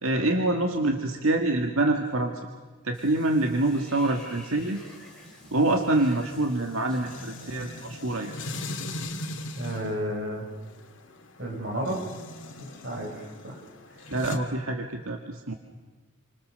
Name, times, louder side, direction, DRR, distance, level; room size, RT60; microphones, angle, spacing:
voice 1, 0.0-2.3 2.8-4.8 5.5-8.3 14.1-15.5, right 2 dB, 80° right, 3 dB, 2.0 m, -26 dB
Water / Bathtub (filling or washing), 2.9-8.9, left 1 dB, 5° left, 6.7 m, -51 dB
sound 1, 4.6-14.4, left 1 dB, 60° left, 2.7 m, -40 dB
voice 2, 9.6-10.5 11.4-12.0 12.6-13.6 13.9-14.1, equal, 50° right, 0 dB, 6.5 m, -32 dB
29.0 x 26.0 x 6.8 m, 1.3 s
head